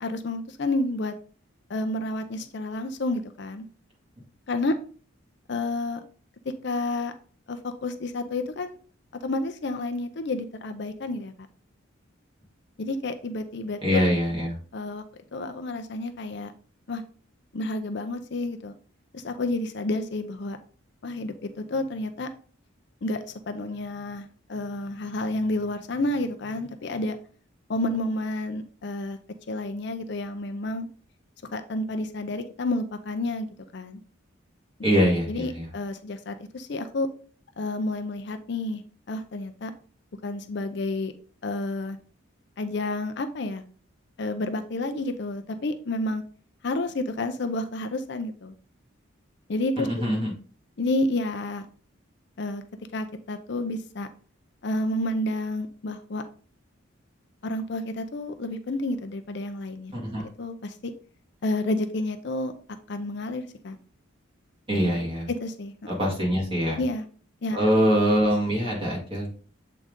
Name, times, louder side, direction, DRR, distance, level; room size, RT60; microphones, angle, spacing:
voice 1, 0.0-1.1 1.7-3.7 4.5-4.8 5.5-6.0 6.5-7.1 7.5-8.8 9.1-11.3 12.8-14.0 14.7-15.0 15.3-16.5 16.9-17.0 17.5-18.8 19.1-20.6 21.0-22.3 23.0-27.2 27.7-29.2 29.5-30.9 31.5-33.5 33.7-34.0 35.3-37.1 37.6-38.8 39.1-39.7 40.2-41.1 41.4-42.0 42.6-43.6 44.2-46.2 46.6-48.5 49.5-50.1 50.8-51.7 52.4-52.6 52.9-54.1 54.6-56.2 57.4-60.9 61.4-62.5 62.9-63.8 65.3-65.9 66.8-67.0 67.4-67.6, left 2 dB, 55° left, 8 dB, 0.5 m, -30 dB
voice 2, 13.8-14.6 34.8-35.6 49.8-50.3 59.9-60.2 64.7-65.3 65.9-66.8 67.5-69.3, equal, 25° right, -3 dB, 2.1 m, -23 dB
7.4 x 3.9 x 3.6 m, 0.42 s
head